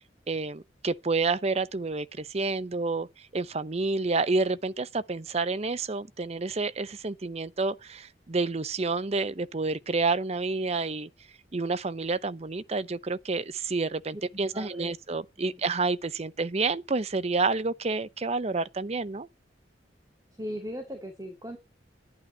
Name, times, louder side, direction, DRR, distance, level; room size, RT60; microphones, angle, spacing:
voice 1, 0.3-3.1 3.3-11.1 11.5-19.3, right 3 dB, 35° right, 0.7 m, -29 dB
voice 2, 14.5-15.0 15.4-15.6 20.4-21.6, equal, 20° right, 2.5 m, -38 dB
11.5 x 10.5 x 4.2 m
head